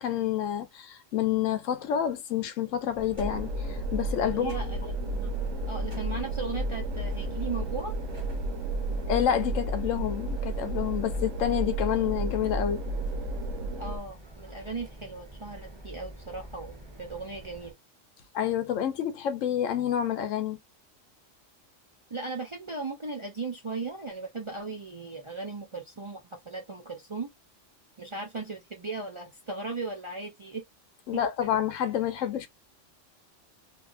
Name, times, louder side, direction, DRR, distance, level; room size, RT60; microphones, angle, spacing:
voice 1, 0.0-4.5 9.1-12.8 18.3-20.6 31.1-32.5, left 10 dB, 80° left, 1.0 m, -28 dB
sound 1, 2.9-17.7, right 1 dB, 25° right, 0.9 m, -47 dB
sound 2, 3.2-14.0, right 1 dB, 85° right, 1.1 m, -32 dB
voice 2, 4.3-5.3 5.7-7.9 13.8-17.7 22.1-27.3 28.0-30.6 31.1-31.2, right 3 dB, 50° right, 0.3 m, -37 dB
2.7 x 2.6 x 2.4 m
omnidirectional pair, 1.3 m